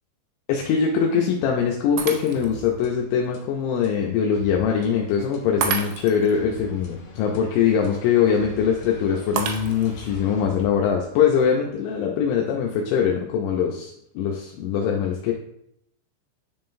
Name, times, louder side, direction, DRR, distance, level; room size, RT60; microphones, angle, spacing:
voice 1, 0.5-15.3, left 7 dB, 85° left, 0 dB, 2.7 m, -22 dB
Shatter, 2.0-2.7 3.2-3.3 5.6-6.3 9.4-10.1, right 7 dB, 85° right, 2.6 m, -29 dB
sound 1, 2.3-11.3, left 2 dB, 70° left, 2.1 m, -45 dB
10.5 x 3.7 x 2.6 m, 0.75 s
omnidirectional pair, 5.9 m